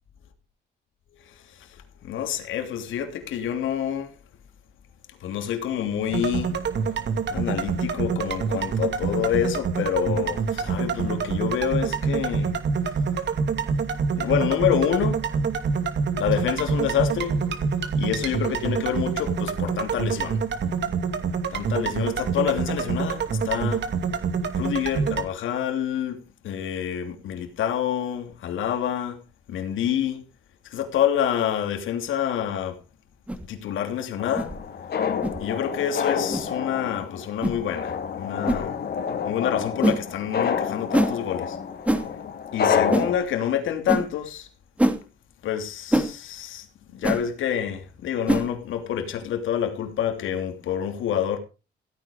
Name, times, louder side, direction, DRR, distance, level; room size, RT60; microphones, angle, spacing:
voice 1, 1.2-4.1 5.2-6.6 7.3-12.5 14.2-15.2 16.2-17.4 18.0-20.4 21.5-23.9 24.5-29.2 29.5-30.2 30.6-32.8 33.4-34.5 35.4-38.8 39.2-41.6 42.0-42.2 42.5-44.5 45.4-46.7 46.9-51.4, left 9 dB, 80° left, 3.0 m, -27 dB
sound 1, 6.1-25.2, right 5 dB, 60° right, 2.6 m, -26 dB
sound 2, 33.3-33.5 34.4-34.5 35.2-35.4 36.3-36.5 37.4-37.6 38.5-38.6 39.8-40.0 40.9-41.1 41.9-42.1 42.9-43.1 43.9-44.0 44.8-45.0 45.9-46.1 47.0-47.2 48.3-48.5, right 1 dB, 5° right, 2.7 m, -23 dB
sound 3, 34.2-43.2, left 7 dB, 55° left, 2.4 m, -28 dB
16.0 x 9.9 x 5.2 m
cardioid pair, 90°, 20 cm